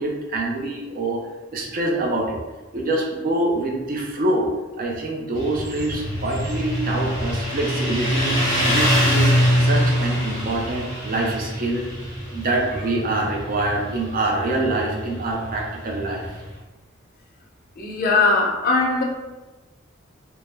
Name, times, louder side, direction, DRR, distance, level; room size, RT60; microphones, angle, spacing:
voice 1, 0.0-2.4 2.7-4.5 4.8-8.4 8.7-11.9 12.3-16.3, right 2 dB, 45° right, -1 dB, 0.4 m, -25 dB
Motorcycle, 5.4-16.5, equal, 20° right, 0.9 m, -24 dB
voice 2, 17.8-19.0, left 3 dB, 45° left, 0 dB, 0.4 m, -20 dB
2.2 x 2.0 x 3.2 m, 1.2 s
head